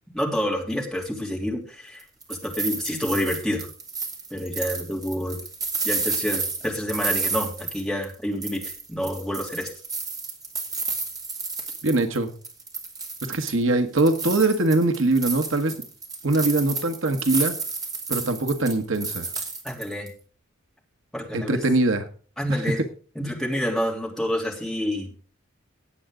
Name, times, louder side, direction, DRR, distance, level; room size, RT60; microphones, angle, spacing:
voice 1, 0.1-2.0 2.3-3.7 4.3-5.4 5.8-8.6 8.9-9.7 19.6-20.1 21.1-21.6 22.4-22.8 23.1-25.1, equal, ahead, -2 dB, 3.1 m, -28 dB
sound 1, 2.0-8.1 8.4-12.2 12.4-13.6 14.0-20.1, right 4 dB, 20° right, 2.5 m, -31 dB
voice 2, 11.8-12.3 13.3-15.7 16.2-17.5 18.1-19.3 21.3-22.1, right 2 dB, 65° right, 7 dB, 1.3 m, -22 dB
18.5 x 8.0 x 3.8 m, 0.39 s
head